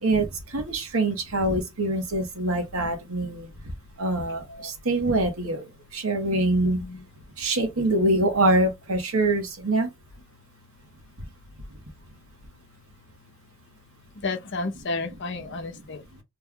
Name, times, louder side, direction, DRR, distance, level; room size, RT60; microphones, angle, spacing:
voice 1, 0.0-6.9 7.2-9.9 11.2-11.3 11.7-11.8 15.3-15.4 15.7-16.2, right 2 dB, 85° right, 1.1 m, -25 dB
voice 2, 14.1-16.0, left 3 dB, 55° left, 0.7 m, -32 dB
3.1 x 2.3 x 3.6 m
head